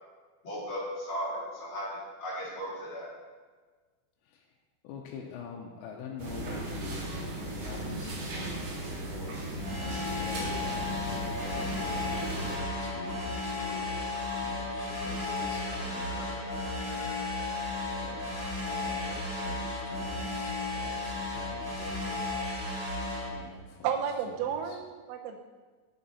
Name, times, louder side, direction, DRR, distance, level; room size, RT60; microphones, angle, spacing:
voice 1, 0.4-3.1, equal, 45° left, -7 dB, 1.8 m, -36 dB
voice 2, 4.8-14.0 14.4-16.5 17.9-18.4 18.7-22.3 23.3-23.9 24.3-24.8, left 6 dB, 90° left, -1 dB, 2.9 m, -46 dB
sound 1, 6.2-12.6, right 1 dB, 60° right, 2.9 m, -37 dB
sound 2, 9.6-23.3, left 2 dB, 40° right, 2.7 m, -34 dB
sound 3, 11.4-19.4, left 4 dB, 70° left, 2.7 m, -49 dB
voice 3, 23.8-25.4, right 8 dB, 85° right, 3 dB, 2.9 m, -32 dB
8.5 x 7.1 x 4.0 m, 1.4 s
omnidirectional pair, 5.2 m